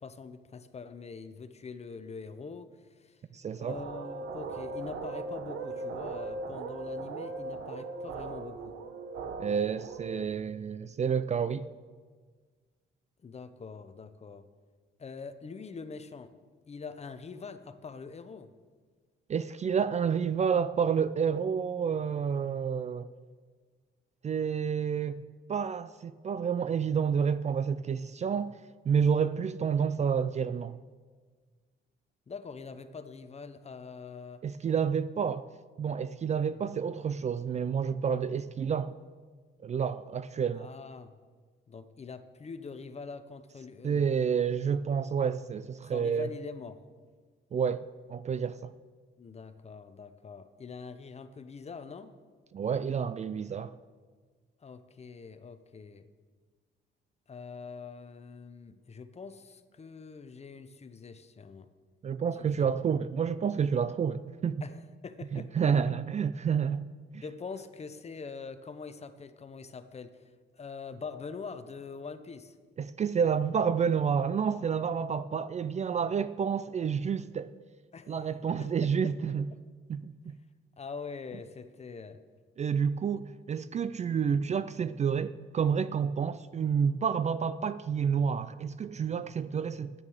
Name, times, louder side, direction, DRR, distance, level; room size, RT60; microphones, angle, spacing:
voice 1, 0.0-3.2 3.6-8.8 13.2-14.5 15.0-16.3 16.7-18.5 32.3-34.4 40.6-41.1 41.7-44.2 45.9-46.8 49.2-52.2 54.6-56.1 57.3-61.7 62.4-62.7 64.6-65.7 67.2-70.3 70.6-72.5 77.9-78.1 78.6-79.1 79.5-79.6 80.8-82.2, left 5 dB, 35° left, 0.8 m, -44 dB
voice 2, 3.3-3.8 9.4-11.7 19.3-23.1 24.2-25.2 25.5-28.6 28.9-30.8 34.4-35.4 35.8-38.9 39.6-40.7 43.8-46.3 47.5-48.7 52.5-53.7 62.0-64.6 65.3-66.8 67.1-67.2 72.8-77.5 78.1-79.5 79.9-80.4 82.6-89.9, right 7 dB, 35° right, 0.4 m, -29 dB
sound 1, 3.7-10.2, right 3 dB, 75° right, 1.1 m, -39 dB
9.6 x 8.9 x 6.5 m
cardioid pair, 90°, 20 cm